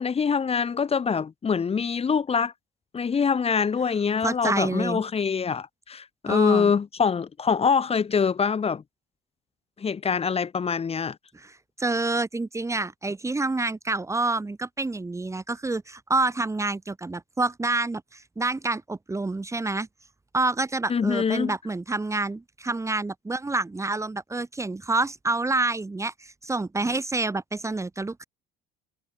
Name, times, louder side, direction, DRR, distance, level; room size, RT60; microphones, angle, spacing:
voice 1, 0.0-2.5 2.9-8.8 9.8-11.2 20.9-21.5, left 6 dB, 30° left, 1.7 m, -24 dB
voice 2, 4.2-5.0 6.3-6.7 11.3-19.9 20.3-28.2, right 2 dB, 15° right, 1.7 m, -28 dB
supercardioid pair, 85°, 20 cm